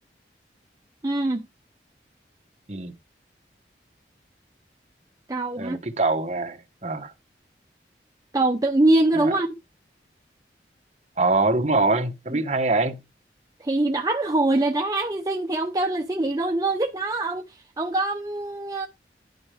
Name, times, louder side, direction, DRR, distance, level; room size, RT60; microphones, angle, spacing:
voice 1, 1.0-1.4 5.3-5.8 8.3-9.5 12.3-12.4 13.6-18.9, right 2 dB, 20° right, 0.6 m, -23 dB
voice 2, 5.6-7.1 9.2-9.3 11.2-13.0, right 3 dB, 40° right, 1.1 m, -24 dB
11.0 x 4.4 x 5.0 m
head